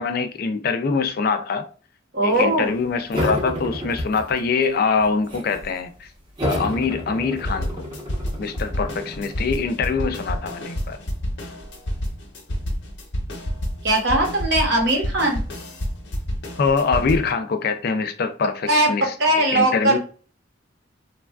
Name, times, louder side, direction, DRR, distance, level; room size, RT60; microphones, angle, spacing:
voice 1, 0.0-1.7 2.2-6.1 6.4-7.9 8.4-11.0 16.6-20.0, left 5 dB, 55° left, 0.4 m, -24 dB
voice 2, 2.1-2.7 13.8-15.4 18.7-18.9 19.2-20.0, right 1 dB, 65° right, 1.0 m, -19 dB
sound 1, 3.1-4.6 5.0-5.7 6.4-9.7, equal, 30° right, 0.9 m, -30 dB
sound 2, 7.4-17.3, equal, 70° left, 0.8 m, -29 dB
3.3 x 2.3 x 2.3 m
head